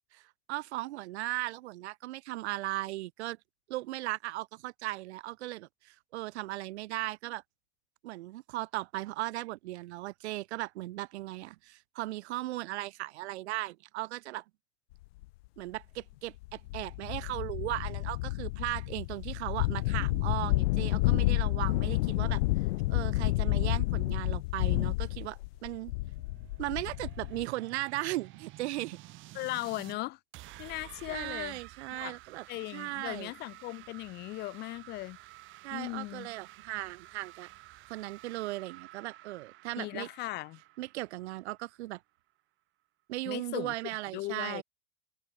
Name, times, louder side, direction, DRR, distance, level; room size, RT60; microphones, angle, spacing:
voice 1, 0.5-3.4 3.7-7.4 8.0-14.4 15.6-22.4 22.9-25.9 26.6-29.0 31.1-32.4 32.7-33.3 35.6-37.5 37.9-40.1 40.8-42.0 43.1-44.6, right 17 dB, 75° right, 1.5 m, -37 dB
sound 1, 15.2-15.3 16.0-16.1 16.4-27.4, left 21 dB, 60° left, 1.2 m, -30 dB
sound 2, 25.4-30.0 30.3-41.9, right 18 dB, 35° right, 3.5 m, -52 dB
voice 2, 29.3-30.2 30.6-31.6 31.9-32.2 32.5-35.2 35.7-36.3 39.8-40.6 43.3-43.7 44.1-44.6, left 19 dB, 30° left, 0.8 m, -38 dB
supercardioid pair, 160°, 34 cm